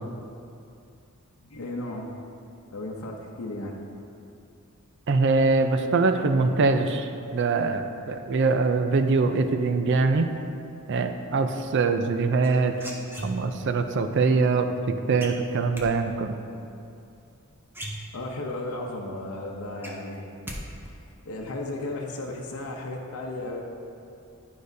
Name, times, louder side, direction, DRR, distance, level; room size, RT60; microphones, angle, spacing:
voice 1, 1.4-2.1 2.7-3.7 18.1-20.3 21.3-23.6, left 2 dB, 85° left, 0 dB, 0.7 m, -34 dB
voice 2, 5.1-10.3 10.9-12.9 13.2-14.7 15.1-16.4, right 3 dB, 55° right, 8 dB, 0.4 m, -23 dB
sound 1, 12.4-13.7 15.2-15.9 17.3-17.4 17.7-18.5 18.9-19.0 19.4-20.6 20.9-21.3, right 1 dB, 10° right, 0.8 m, -38 dB
11.5 x 4.9 x 2.7 m, 2.6 s
head